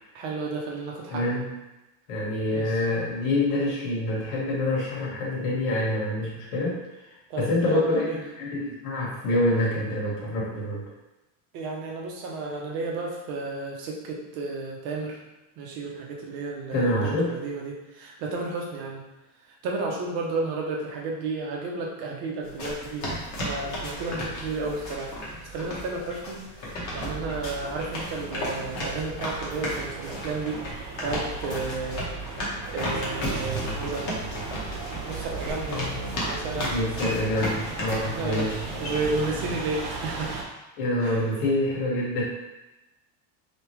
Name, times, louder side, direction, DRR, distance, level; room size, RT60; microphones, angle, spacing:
voice 1, 0.1-1.2 2.5-2.8 7.3-8.2 11.5-15.2 15.6-19.0 19.6-23.1 23.4-25.1 25.4-26.4 26.9-30.6 31.0-34.1 35.0-35.8 36.2-36.7 38.0-38.5 38.8-40.3 41.0-41.5, right 3 dB, 45° right, -1 dB, 0.7 m, -32 dB
voice 2, 1.1-1.5 2.1-6.8 7.4-10.8 16.7-17.4 35.7-38.6 40.8-42.2, left 1 dB, 75° left, -5 dB, 1.4 m, -26 dB
sound 1, 22.4-39.2, equal, 35° left, 0.8 m, -34 dB
sound 2, 26.9-40.4, right 4 dB, 75° right, 0.9 m, -37 dB
3.4 x 2.9 x 3.0 m, 1.0 s
cardioid pair, 180°, 49 cm